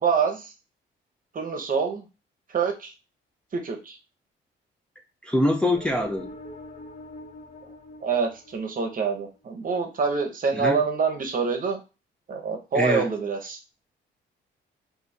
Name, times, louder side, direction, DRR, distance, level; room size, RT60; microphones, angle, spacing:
voice 1, 0.0-0.5 1.3-2.0 2.5-2.9 3.5-4.0 8.0-11.8 12.3-13.6, right 5 dB, 45° right, 4 dB, 0.9 m, -26 dB
voice 2, 5.3-6.3 10.5-10.8 12.7-13.1, left 1 dB, 5° left, 0 dB, 0.6 m, -24 dB
sound 1, 5.7-9.3, left 1 dB, 30° left, 0.9 m, -44 dB
2.7 x 2.5 x 4.2 m, 0.29 s
cardioid pair, 90°, 20 cm